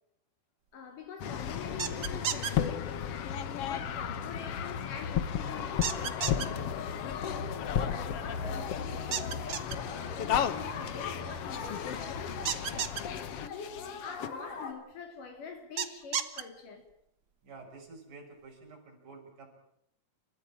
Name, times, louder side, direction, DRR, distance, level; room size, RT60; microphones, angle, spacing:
voice 1, 0.7-16.8, left 5 dB, 75° left, 5.1 m, -46 dB
sound 1, 1.2-14.3, left 8 dB, 60° left, 1.8 m, -34 dB
sound 2, 1.8-2.5 5.8-6.5 9.1-9.8 12.5-13.0 15.8-16.4, right 8 dB, 50° right, 1.5 m, -32 dB
sound 3, 5.5-14.7, left 4 dB, 90° left, 4.7 m, -44 dB
voice 2, 17.4-19.5, right 3 dB, 70° right, 7.7 m, -50 dB
29.5 x 14.5 x 8.9 m
omnidirectional pair, 3.8 m